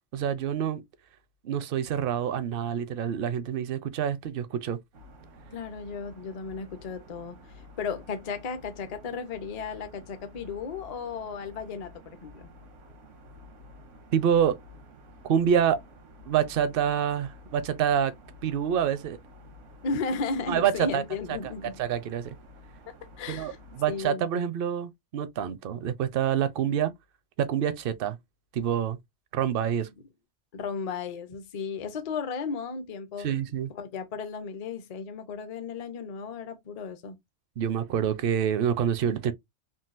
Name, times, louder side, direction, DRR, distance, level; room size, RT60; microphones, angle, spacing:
voice 1, 0.1-0.8 1.4-4.8 14.1-14.6 15.2-15.8 16.3-18.1 18.4-19.2 20.5-21.0 21.8-22.4 23.3-26.9 27.4-28.2 28.5-29.0 29.3-29.9 33.2-33.7 37.6-39.3, right 9 dB, 60° right, 0.6 m, -27 dB
sound 1, 4.9-24.1, left 1 dB, 80° right, 1.1 m, -51 dB
voice 2, 5.5-12.5 19.8-21.8 22.9-23.6 23.9-24.3 30.5-33.3 33.7-37.2, left 5 dB, 45° left, 0.5 m, -35 dB
3.8 x 2.3 x 2.4 m
omnidirectional pair, 1.2 m